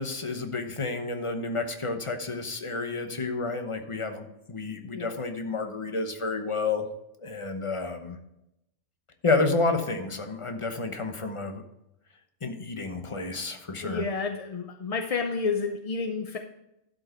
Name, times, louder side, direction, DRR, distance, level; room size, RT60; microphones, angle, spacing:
voice 1, 0.0-6.9 7.2-8.2 9.2-11.6 12.4-14.1, left 3 dB, 30° left, 6 dB, 0.9 m, -30 dB
voice 2, 13.8-16.4, left 4 dB, 45° left, 5 dB, 0.5 m, -30 dB
12.0 x 5.4 x 4.4 m, 0.85 s
omnidirectional pair, 1.3 m